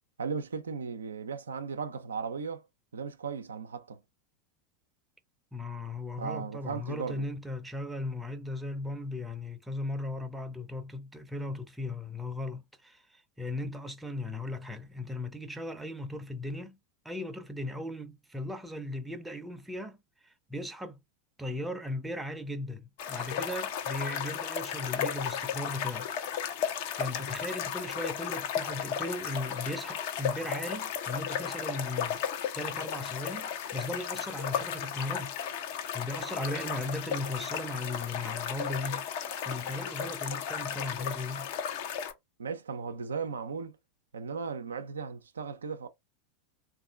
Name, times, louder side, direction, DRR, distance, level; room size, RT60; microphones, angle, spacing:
voice 1, 0.2-2.6 2.9-4.0 6.2-7.3 42.4-43.8 44.1-45.9, right 5 dB, 75° right, 0.4 m, -36 dB
voice 2, 5.5-16.8 17.0-21.0 21.4-26.1 26.9-32.2 32.5-35.3 35.9-39.0 39.4-41.5, left 2 dB, 5° right, 0.6 m, -37 dB
sound 1, 23.0-42.1, left 8 dB, 55° left, 0.7 m, -34 dB
3.6 x 2.5 x 2.4 m
figure-of-eight pair, 85°, 0 cm